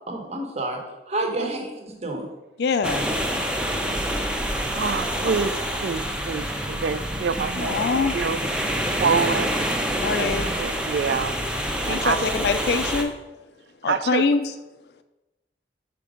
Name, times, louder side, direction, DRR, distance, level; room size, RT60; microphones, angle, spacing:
voice 1, 0.1-0.8 1.1-2.3 10.3-10.6, right 2 dB, 35° right, 2 dB, 1.0 m, -29 dB
voice 2, 2.6-3.1 7.6-8.2 10.0-10.5 11.9-13.2 13.8-14.5, left 4 dB, 60° left, 9 dB, 0.4 m, -24 dB
sound 1, 2.8-13.0, equal, 5° right, 0.5 m, -27 dB
voice 3, 4.7-5.5 5.8-7.8 8.1-8.4 9.0-9.6 10.2-10.3 10.6-11.3 11.9-12.3 13.9-14.3, right 5 dB, 65° right, 14 dB, 0.4 m, -26 dB
sound 2, 9.1-12.1 12.9-13.4, right 2 dB, 90° right, 1.4 m, -42 dB
5.8 x 5.1 x 4.9 m, 1.1 s
head